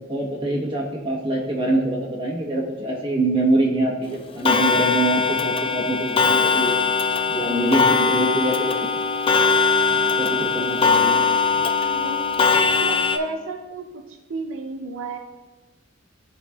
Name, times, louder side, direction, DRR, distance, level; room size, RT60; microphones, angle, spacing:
voice 1, 0.1-6.8 7.3-9.0 9.9-11.2, right 1 dB, 25° right, -1 dB, 1.0 m, -24 dB
Clock, 4.4-13.2, left 4 dB, 30° left, 0.4 m, -20 dB
voice 2, 11.1-15.2, right 3 dB, 80° right, 4 dB, 0.6 m, -34 dB
13.5 x 4.9 x 2.3 m, 1.2 s
head